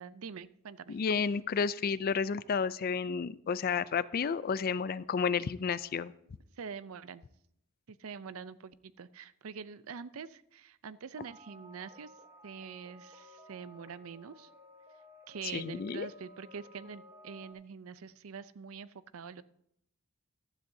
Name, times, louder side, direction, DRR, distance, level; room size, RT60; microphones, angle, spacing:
voice 1, 0.0-1.0 6.6-7.2 7.9-12.1 12.4-14.5 15.3-19.4, right 6 dB, 85° right, 16 dB, 0.5 m, -45 dB
voice 2, 0.9-6.1 15.5-16.1, left 6 dB, 45° left, 17 dB, 0.4 m, -31 dB
sound 1, 11.1-17.5, left 1 dB, 20° right, 4.0 m, -55 dB
15.0 x 12.5 x 2.7 m, 0.74 s
head